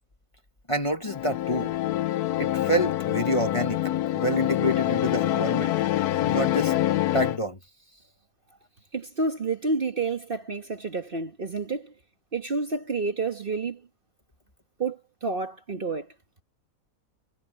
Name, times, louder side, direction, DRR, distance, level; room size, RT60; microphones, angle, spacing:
voice 1, 0.7-1.7 2.4-5.7 6.2-6.7 7.1-7.6, equal, 20° left, 1.4 m, -27 dB
sound 1, 1.0-7.4, left 13 dB, 90° left, 1.1 m, -26 dB
voice 2, 8.9-11.9 12.3-13.8 14.8-16.1, right 3 dB, 40° right, 1.4 m, -29 dB
omnidirectional pair, 1.6 m